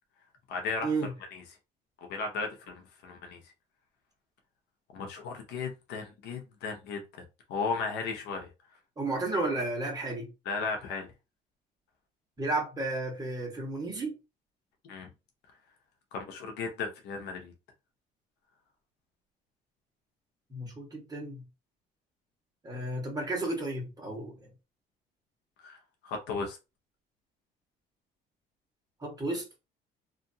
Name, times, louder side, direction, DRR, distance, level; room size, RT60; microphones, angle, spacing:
voice 1, 0.5-0.9 1.3-1.4 2.1-3.4 4.9-7.2 7.5-8.5 10.4-11.1 14.8-15.1 16.1-17.5 25.6-26.6, left 4 dB, 80° left, 0.9 m, -35 dB
voice 2, 9.0-10.3 12.4-14.1 20.5-21.4 22.6-24.3 29.0-29.6, right 2 dB, 20° right, 1.3 m, -32 dB
2.7 x 2.5 x 2.7 m
cardioid pair, 110°, 17 cm